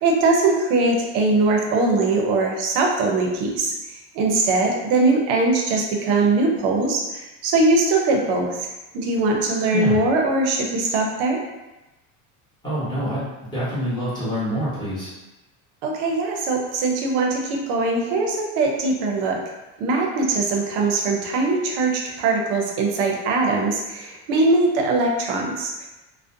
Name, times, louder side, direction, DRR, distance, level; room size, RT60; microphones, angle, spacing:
voice 1, 0.0-3.7 4.1-8.7 8.9-11.4 15.8-19.4 19.8-25.9, right 3 dB, 65° right, 1 dB, 0.6 m, -21 dB
voice 2, 12.6-15.1, equal, 10° left, -11 dB, 1.0 m, -26 dB
2.4 x 2.1 x 2.5 m, 1.0 s
cardioid pair, 160°, 37 cm